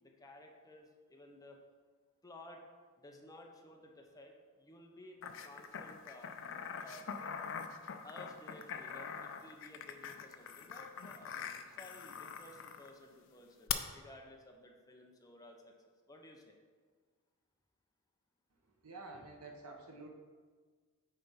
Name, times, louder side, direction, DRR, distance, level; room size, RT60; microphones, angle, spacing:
voice 1, 0.0-1.6 2.2-2.6 3.0-6.3 6.8-7.1 8.0-11.4 11.7-15.7 16.1-16.6, left 1 dB, 15° left, 1 dB, 0.8 m, -55 dB
sound 1, 5.2-12.9 13.7-13.8, left 8 dB, 60° left, 0.5 m, -43 dB
voice 2, 18.8-20.1, right 2 dB, 85° right, 2 dB, 1.2 m, -49 dB
9.0 x 3.4 x 5.6 m, 1.5 s
head